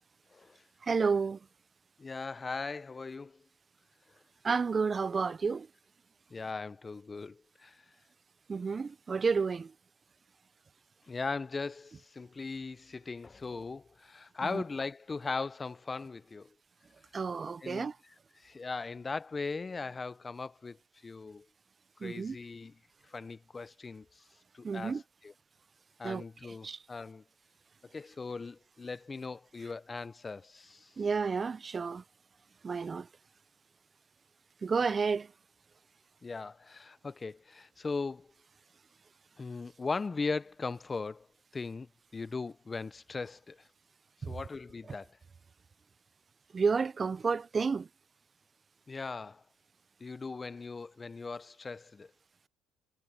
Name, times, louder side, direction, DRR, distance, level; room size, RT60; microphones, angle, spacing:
voice 1, 0.3-0.6 2.0-3.4 6.3-7.8 11.1-16.5 17.6-17.9 18.3-20.8 21.0-21.5 22.0-22.8 23.1-24.2 24.5-25.3 26.0-27.2 27.8-30.9 34.9-35.0 36.2-38.3 39.4-41.3 41.5-43.6 44.2-45.2 48.9-49.4 50.0-52.1, left 4 dB, 25° left, 0.5 m, -39 dB
voice 2, 0.8-1.4 4.4-5.7 8.5-9.7 14.5-14.6 17.1-18.0 22.0-22.4 24.6-25.0 26.0-26.2 26.6-26.8 31.0-32.0 32.6-33.1 34.6-35.3 44.3-44.4 46.5-47.9, right 5 dB, 30° right, 0.5 m, -30 dB
cardioid pair, 95°, 0 cm